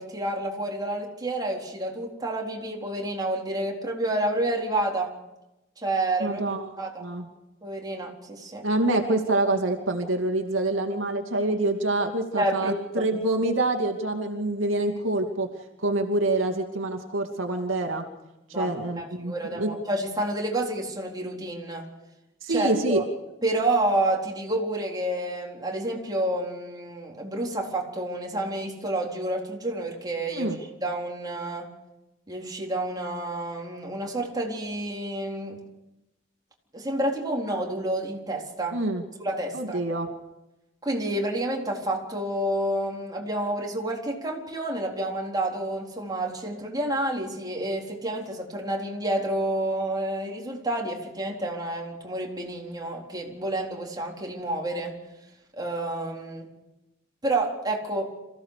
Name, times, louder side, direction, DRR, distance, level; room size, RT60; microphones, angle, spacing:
voice 1, 0.0-5.1 5.8-7.0 7.6-8.6 12.4-13.1 18.5-21.9 22.5-23.0 23.4-30.5 30.8-31.7 32.3-35.6 36.7-38.8 39.2-39.8 40.8-54.9 55.5-56.5 57.2-58.1, right 1 dB, 20° right, -1 dB, 4.1 m, -29 dB
voice 2, 6.2-6.7 7.0-7.3 8.6-15.5 15.8-18.1 18.5-19.7 22.4-23.0 30.3-30.6 38.7-39.0 39.5-40.1, right 2 dB, 80° right, 3 dB, 2.5 m, -26 dB
27.0 x 16.0 x 6.7 m, 0.96 s
head